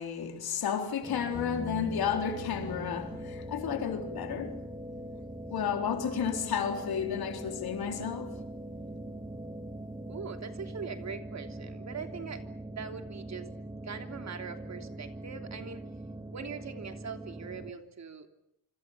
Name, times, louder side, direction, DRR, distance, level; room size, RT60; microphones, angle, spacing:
voice 1, 0.0-4.7 5.5-8.4, left 8 dB, 75° left, 4.0 m, -32 dB
sound 1, 1.0-17.7, right 1 dB, 15° right, 1.8 m, -42 dB
sound 2, 1.3-10.3, left 4 dB, 20° left, 1.7 m, -48 dB
voice 2, 10.1-13.5 13.8-15.9 16.3-18.3, right 6 dB, 45° right, 3.2 m, -42 dB
27.0 x 26.0 x 7.3 m
cardioid pair, 125°, 37 cm